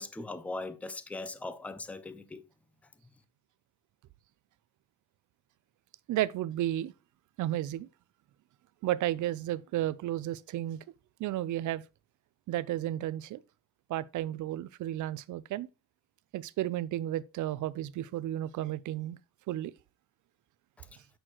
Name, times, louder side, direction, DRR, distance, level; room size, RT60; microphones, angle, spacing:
voice 1, 0.0-2.4 20.8-20.9, left 2 dB, 5° left, 0.4 m, -40 dB
voice 2, 6.1-6.9 7.4-7.9 8.8-10.8 11.2-11.8 12.5-13.4 13.9-15.7 16.3-19.2 19.5-19.7, right 13 dB, 60° right, 0.4 m, -33 dB
8.0 x 6.3 x 2.9 m
cardioid pair, 160°, 35 cm